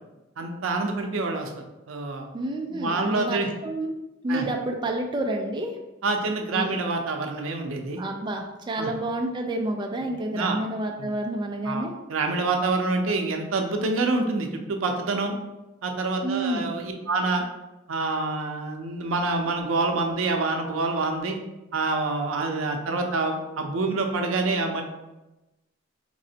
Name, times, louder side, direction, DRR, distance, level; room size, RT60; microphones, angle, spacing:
voice 1, 0.4-1.5 1.9-2.3 2.7-3.5 4.3-4.5 6.0-8.0 8.8-8.9 10.3-10.6 11.0-11.1 11.6-15.3 15.8-17.4 17.9-21.4 21.7-24.8, right 3 dB, 80° right, 4 dB, 0.5 m, -27 dB
voice 2, 2.3-3.9 4.2-5.7 6.5-6.8 8.0-11.9 16.2-16.8, right 1 dB, 25° right, 2 dB, 0.3 m, -29 dB
4.1 x 3.0 x 2.8 m, 1.0 s
head